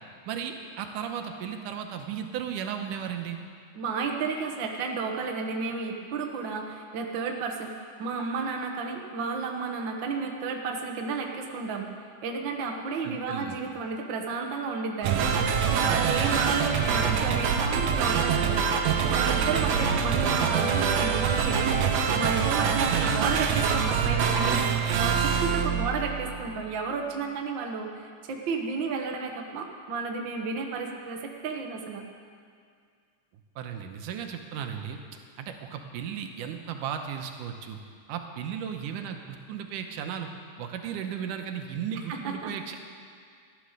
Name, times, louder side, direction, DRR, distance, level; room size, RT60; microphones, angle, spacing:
voice 1, 0.3-3.4 13.0-13.6 22.8-23.2 33.6-35.0 35.4-37.8 38.1-40.3 40.6-42.8, right 8 dB, 85° right, 5 dB, 2.5 m, -35 dB
voice 2, 3.7-11.9 12.2-15.4 15.7-18.6 19.1-24.6 25.0-32.0 42.1-42.5, right 4 dB, 50° right, 2 dB, 1.5 m, -32 dB
sound 1, 15.0-26.6, right 6 dB, 70° right, 1.8 m, -25 dB
14.5 x 10.5 x 6.6 m, 2.2 s
omnidirectional pair, 3.6 m